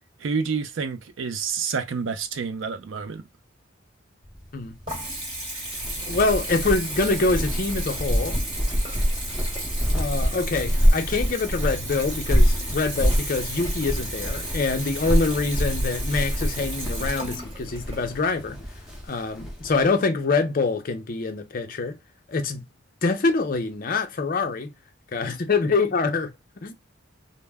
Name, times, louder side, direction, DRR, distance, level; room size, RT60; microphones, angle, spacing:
voice 1, 0.2-3.2, right 5 dB, 70° right, 0.4 m, -28 dB
Water tap faucet / Bathtub (filling or washing) / Trickle dribble, 4.2-19.1, right 1 dB, 25° right, 1.2 m, -35 dB
sound 1, 5.7-19.8, equal, 5° right, 0.7 m, -26 dB
voice 2, 6.1-8.4 9.9-18.6 19.1-22.0 22.3-22.6 23.0-24.7 25.1-26.7, left 3 dB, 45° left, 0.5 m, -25 dB
2.1 x 2.0 x 3.3 m
head